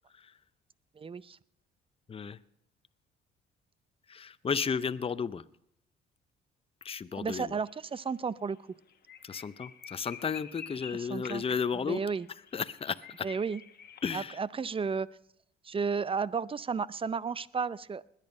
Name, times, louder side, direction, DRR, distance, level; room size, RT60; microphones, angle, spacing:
voice 1, 1.0-1.4 7.1-8.6 10.9-11.4 11.7-12.3 13.2-13.6 14.1-15.1 15.6-18.0, right 5 dB, 25° right, 20 dB, 0.5 m, -33 dB
voice 2, 4.1-5.4 6.8-7.5 9.2-12.0 12.5-13.3 14.0-14.4, left 6 dB, 30° left, 14 dB, 0.6 m, -33 dB
sound 1, 7.4-7.7 8.0-8.1 8.5-8.6 8.9-14.2, left 7 dB, 50° left, 1.3 m, -48 dB
20.5 x 9.0 x 5.4 m, 0.75 s
supercardioid pair, 65°, 21 cm